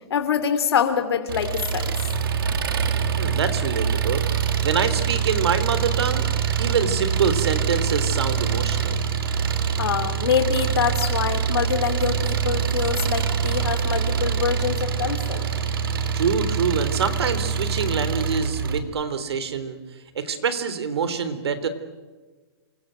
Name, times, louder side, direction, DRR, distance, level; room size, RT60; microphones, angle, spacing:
voice 1, 0.1-1.9 9.8-15.4, left 7 dB, 70° left, 7 dB, 2.9 m, -25 dB
Engine, 1.3-18.8, right 7 dB, 55° right, 3.0 m, -24 dB
voice 2, 3.2-4.2 4.6-6.3 6.6-9.1 16.1-19.8 20.2-21.7, right 6 dB, 75° right, 12 dB, 3.7 m, -25 dB
27.5 x 23.0 x 9.2 m, 1.3 s
hypercardioid pair, 180°, 14 cm